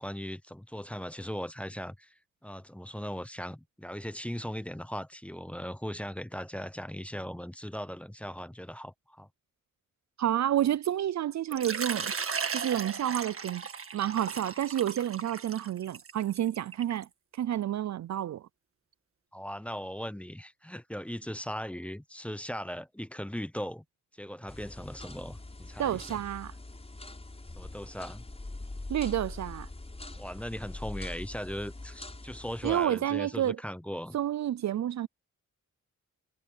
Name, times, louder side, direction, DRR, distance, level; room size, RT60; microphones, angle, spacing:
voice 1, 0.0-2.1 2.4-9.3 19.3-23.8 24.2-26.2 27.6-28.2 30.2-34.2, equal, 5° left, 0.7 m, -38 dB
voice 2, 10.2-12.1 12.5-13.6 13.9-17.1 17.3-18.4 25.8-26.5 28.9-29.7 32.6-33.6 34.1-35.1, right 11 dB, 60° right, 0.4 m, -29 dB
Water / Liquid, 11.5-17.0, right 5 dB, 45° right, 1.7 m, -36 dB
sound 1, 24.5-32.9, left 2 dB, 20° left, 6.6 m, -43 dB
wide cardioid pair, 135°, 31 cm